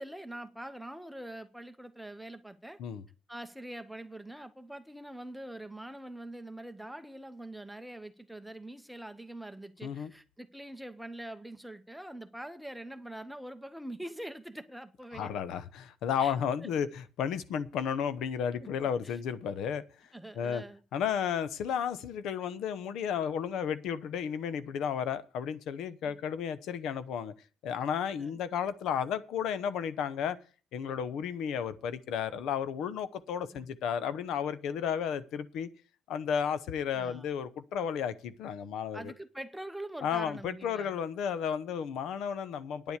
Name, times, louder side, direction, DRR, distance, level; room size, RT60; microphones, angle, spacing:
voice 1, 0.0-2.8 3.3-15.3 16.2-16.3 16.6-16.7 18.6-18.7 19.0-19.2 20.1-20.8 26.0-26.2 28.2-28.4 33.5-33.7 36.9-37.3 38.9-41.0, right 1 dB, ahead, 0.9 m, -44 dB
voice 2, 15.1-19.8 20.4-20.6 20.9-27.3 27.6-30.4 30.7-35.7 36.1-39.1 40.0-43.0, left 8 dB, 80° left, 0.9 m, -33 dB
10.0 x 7.3 x 8.2 m
cardioid pair, 150°, 0 cm